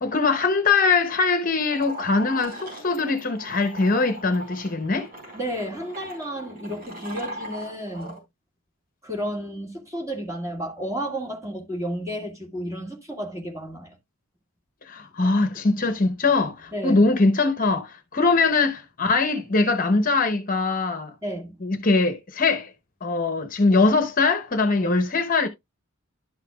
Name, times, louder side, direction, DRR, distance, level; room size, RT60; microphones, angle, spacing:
voice 1, 0.0-5.1 14.9-21.1 21.6-22.7 23.0-25.5, left 3 dB, 40° left, 0.8 m, -22 dB
sound 1, 1.7-8.2, right 1 dB, 45° right, 4.3 m, -39 dB
voice 2, 5.3-8.2 9.0-14.0 16.7-17.1 21.2-21.6 24.8-24.9, equal, 15° right, 1.8 m, -32 dB
11.5 x 5.7 x 2.3 m
head